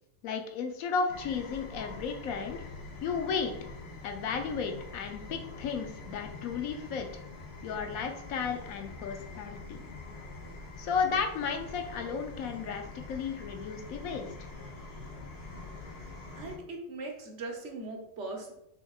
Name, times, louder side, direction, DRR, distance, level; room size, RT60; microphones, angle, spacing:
voice 1, 0.2-2.6 3.0-3.5 4.0-7.2 7.6-9.8 10.8-14.5, left 5 dB, 85° left, 4 dB, 1.1 m, -34 dB
sound 1, 1.1-16.6, left 3 dB, 55° left, 1.0 m, -45 dB
voice 2, 16.4-18.5, right 2 dB, 60° right, 2 dB, 1.1 m, -40 dB
6.1 x 3.6 x 2.3 m, 0.80 s
omnidirectional pair, 1.4 m